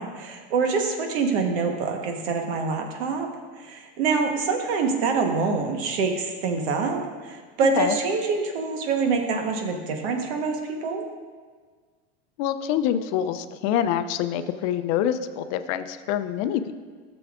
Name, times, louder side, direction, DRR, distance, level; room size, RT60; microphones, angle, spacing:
voice 1, 0.0-3.3 3.6-7.0 7.2-11.0, right 4 dB, 75° right, 4 dB, 1.2 m, -25 dB
voice 2, 12.4-16.7, left 10 dB, 55° left, 11 dB, 0.5 m, -26 dB
12.5 x 6.9 x 2.5 m, 1.5 s
supercardioid pair, 110°, 33 cm